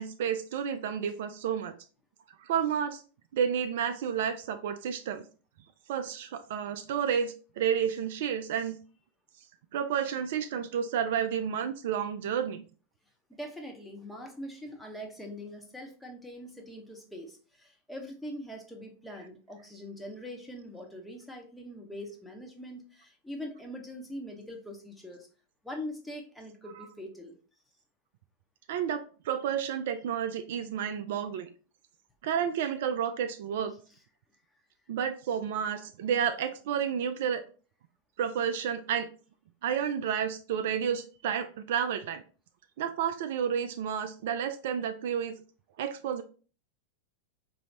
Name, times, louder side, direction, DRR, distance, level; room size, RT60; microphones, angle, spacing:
voice 1, 0.0-1.7 2.4-3.0 3.3-5.2 5.9-8.8 9.7-12.6 28.7-31.5 32.2-33.7 34.9-37.4 38.2-39.1 39.6-42.2 42.8-45.4 45.8-46.2, right 8 dB, 55° right, 9 dB, 0.3 m, -31 dB
voice 2, 13.3-25.3 25.6-27.4, equal, 5° left, 2 dB, 0.8 m, -42 dB
3.9 x 2.7 x 3.2 m, 0.38 s
figure-of-eight pair, 90°, 0 cm